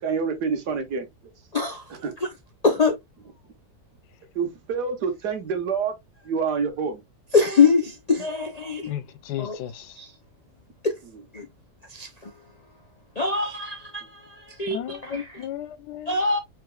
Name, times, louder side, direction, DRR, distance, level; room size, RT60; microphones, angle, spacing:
voice 1, 0.0-1.1 1.9-2.1 4.4-5.9 6.3-7.0, right 5 dB, 80° right, 1.7 m, -27 dB
voice 2, 1.5-1.8 2.6-2.9 7.3-8.9 9.4-9.6 10.0-10.1 10.8-10.9 11.3-11.5 11.9-12.3 13.2-14.2 14.5-15.4 16.1-16.4, left 4 dB, 55° left, 0.4 m, -23 dB
voice 3, 8.9-10.0 14.7-16.2, left 12 dB, 85° left, 1.2 m, -35 dB
4.8 x 4.4 x 2.3 m
omnidirectional pair, 1.8 m